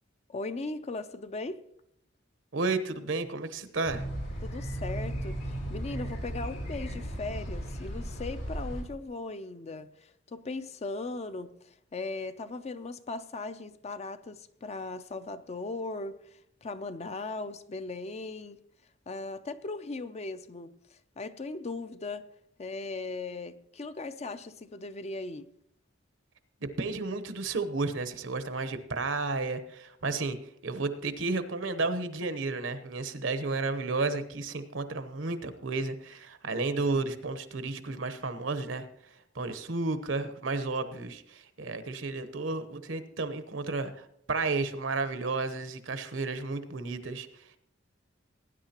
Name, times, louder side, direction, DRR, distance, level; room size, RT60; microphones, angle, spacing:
voice 1, 0.3-1.7 4.4-18.6 19.1-20.7 21.2-22.3 22.6-25.5, left 3 dB, 35° left, 0.5 m, -38 dB
voice 2, 2.5-4.0 26.6-30.4 30.6-38.9 39.3-47.3, right 3 dB, 75° right, 1.0 m, -32 dB
sound 1, 3.8-8.8, right 1 dB, 80° left, 4.0 m, -36 dB
18.5 x 9.8 x 2.9 m
head